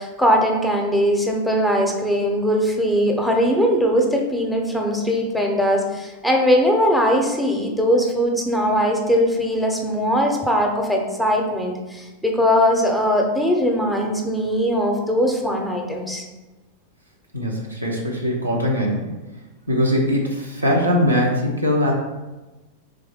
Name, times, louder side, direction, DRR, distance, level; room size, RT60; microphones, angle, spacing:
voice 1, 0.0-16.3, equal, ahead, 1 dB, 0.7 m, -20 dB
voice 2, 17.3-19.1 19.7-21.9, equal, 85° right, -1 dB, 0.7 m, -21 dB
3.6 x 3.3 x 3.5 m, 1.1 s
figure-of-eight pair, 90°, 0 cm